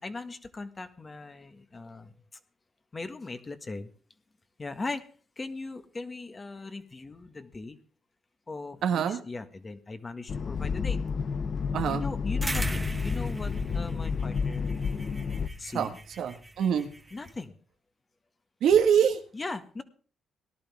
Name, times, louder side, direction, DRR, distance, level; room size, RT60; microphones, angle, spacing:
voice 1, 0.0-2.1 2.9-3.9 4.6-5.0 5.4-7.8 8.5-11.0 11.9-14.8 15.6-16.0 17.1-17.6 19.3-19.8, left 3 dB, 30° left, 8 dB, 1.6 m, -39 dB
voice 2, 8.8-9.2 11.7-12.1 15.7-15.9 16.2-16.9 18.6-19.2, right 8 dB, 75° right, 6 dB, 1.6 m, -24 dB
sound 1, 10.3-15.5, left 5 dB, 50° left, 0.8 m, -30 dB
sound 2, 12.4-17.3, right 2 dB, 15° right, 1.1 m, -39 dB
18.5 x 11.5 x 3.6 m, 0.40 s
cardioid pair, 90°, 0 cm